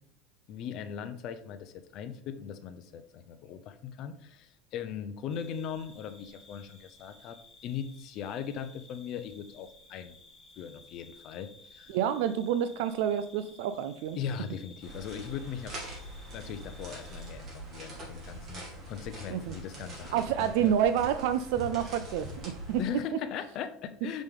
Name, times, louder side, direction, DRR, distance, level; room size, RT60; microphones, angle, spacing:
voice 1, 0.5-10.2 10.6-12.0 14.2-15.8 16.3-20.7 22.8-24.2, left 8 dB, 45° left, 9 dB, 0.7 m, -39 dB
sound 1, 5.3-17.3, left 3 dB, 15° left, 1.4 m, -56 dB
voice 2, 11.9-14.2 19.3-19.5 20.1-22.8, right 9 dB, 70° right, 11 dB, 0.4 m, -28 dB
sound 2, 14.8-22.9, right 1 dB, 35° right, 2.3 m, -44 dB
sound 3, 16.2-22.8, left 2 dB, 85° left, 0.6 m, -51 dB
6.2 x 5.2 x 3.6 m, 0.64 s
cardioid pair, 155°, 0 cm